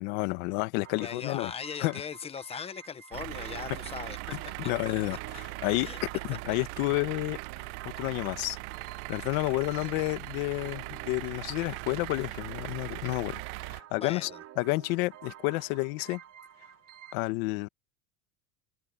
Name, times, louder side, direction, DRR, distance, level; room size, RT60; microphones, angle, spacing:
voice 1, 0.0-1.5 1.8-2.0 4.3-5.9 6.3-7.4 7.8-8.6 9.1-14.3 14.6-16.2 17.1-17.7, left 22 dB, 85° left, 1.4 m, -30 dB
sound 1, 0.8-17.1, right 12 dB, 40° right, 4.7 m, -50 dB
voice 2, 1.0-4.7 5.8-6.0 9.4-9.5 9.8-10.0 14.0-14.4, left 7 dB, 15° left, 0.6 m, -40 dB
sound 2, 3.1-13.8, right 26 dB, 65° right, 0.5 m, -40 dB
cardioid pair, 170°, 39 cm